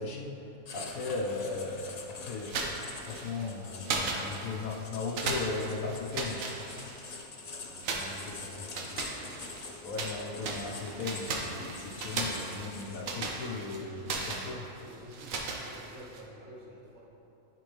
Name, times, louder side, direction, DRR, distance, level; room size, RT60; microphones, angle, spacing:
voice 1, 0.0-6.4 7.9-8.5 9.8-14.6, left 3 dB, 80° left, -2 dB, 1.1 m, -37 dB
Writing, 0.7-13.2, left 4 dB, 45° left, 0.5 m, -46 dB
sound 1, 2.4-3.5 3.8-4.8 5.1-7.2 7.8-10.2 10.4-16.2, right 3 dB, 75° right, 1.2 m, -37 dB
voice 2, 7.6-9.3 13.9-17.0, right 1 dB, 60° right, -4 dB, 1.4 m, -51 dB
10.5 x 4.6 x 3.3 m, 2.8 s
omnidirectional pair, 1.4 m